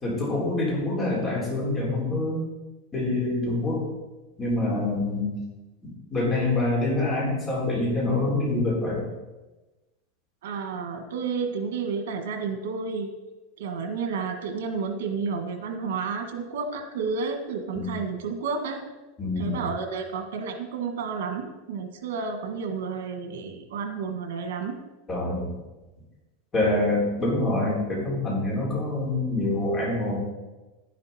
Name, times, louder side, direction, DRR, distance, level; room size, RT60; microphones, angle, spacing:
voice 1, 0.0-2.5 2.9-3.8 4.4-5.3 5.8-9.1 17.7-17.9 19.2-19.6 25.1-25.5 26.5-30.2, left 2 dB, 15° left, -5 dB, 3.9 m, -26 dB
voice 2, 10.4-13.1 13.6-18.8 19.4-24.8, right 5 dB, 85° right, 6 dB, 1.6 m, -31 dB
11.0 x 10.5 x 4.3 m, 1.1 s
supercardioid pair, 170°, 0 cm